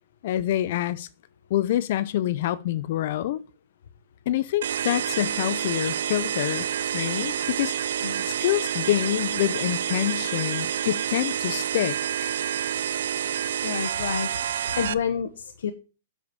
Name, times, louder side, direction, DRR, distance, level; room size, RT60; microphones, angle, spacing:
voice 1, 0.2-1.1 1.5-3.4 4.3-6.7 6.9-7.7 8.3-12.0 12.2-12.3, left 13 dB, 55° left, 0.5 m, -26 dB
sound 1, 4.6-14.9, right 9 dB, 75° right, 0.4 m, -28 dB
voice 2, 13.6-15.7, left 7 dB, 75° left, 1.0 m, -29 dB
7.8 x 5.1 x 6.7 m
hypercardioid pair, 135°, 0 cm